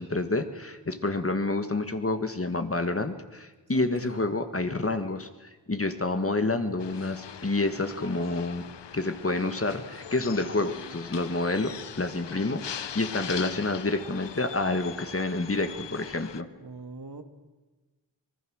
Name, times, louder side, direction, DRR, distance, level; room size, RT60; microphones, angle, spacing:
voice 1, 0.0-8.6 8.9-16.5, left 2 dB, 30° left, 8 dB, 1.8 m, -28 dB
voice 2, 3.7-4.3 6.6-6.7 16.6-17.2, right 3 dB, 60° right, 6 dB, 2.2 m, -43 dB
sound 1, 6.8-16.4, left 8 dB, 75° left, 0.9 m, -41 dB
25.0 x 20.0 x 6.4 m, 1.2 s
cardioid pair, 50°, 43 cm